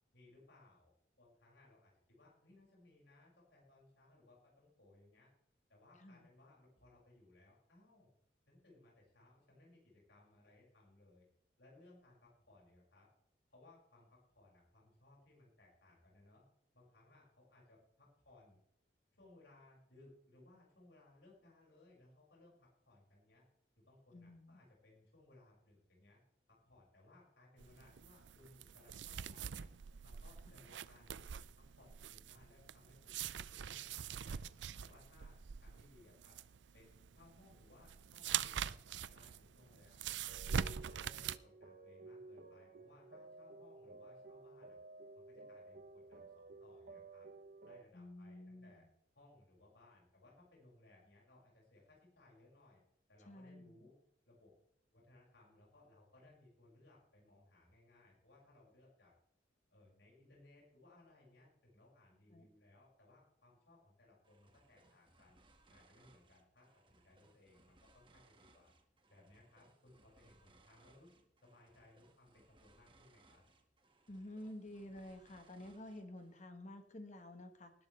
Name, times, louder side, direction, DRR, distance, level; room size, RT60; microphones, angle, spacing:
voice 1, 0.1-0.9 1.2-5.3 5.7-8.1 8.5-11.2 11.6-13.1 13.5-16.4 16.7-18.6 19.1-23.4 23.8-26.2 26.5-29.7 30.0-31.3 31.5-34.5 34.8-36.4 36.7-40.5 40.9-44.8 45.1-47.3 47.6-48.8 49.1-52.8 53.1-54.0 54.2-54.5 54.9-59.1 59.7-65.4 65.7-68.7 69.1-71.1 71.4-73.4, left 2 dB, 80° left, -4 dB, 6.2 m, -65 dB
voice 2, 24.1-24.6 30.5-30.6 47.9-48.9 53.3-53.9 62.3-62.5 74.1-77.7, left 1 dB, 40° left, 6 dB, 1.4 m, -51 dB
sound 1, 27.6-41.4, right 8 dB, 85° right, 0.5 m, -44 dB
sound 2, 40.3-47.8, right 3 dB, 55° right, 1.0 m, -55 dB
sound 3, 64.2-76.5, right 2 dB, 30° right, 1.8 m, -69 dB
19.5 x 12.0 x 3.4 m, 0.73 s
head